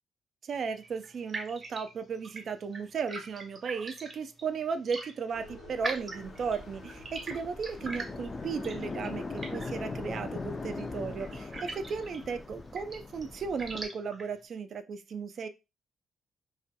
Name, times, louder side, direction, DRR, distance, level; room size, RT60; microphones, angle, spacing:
voice 1, 0.4-15.5, right 5 dB, 55° right, 10 dB, 0.3 m, -35 dB
sound 1, 0.5-14.4, right 3 dB, 35° right, 0.7 m, -44 dB
sound 2, 5.3-12.4, left 1 dB, 90° left, 0.8 m, -52 dB
sound 3, 6.1-13.9, left 3 dB, 30° left, 0.3 m, -40 dB
2.3 x 2.1 x 2.7 m, 0.26 s
cardioid pair, 90°, 0 cm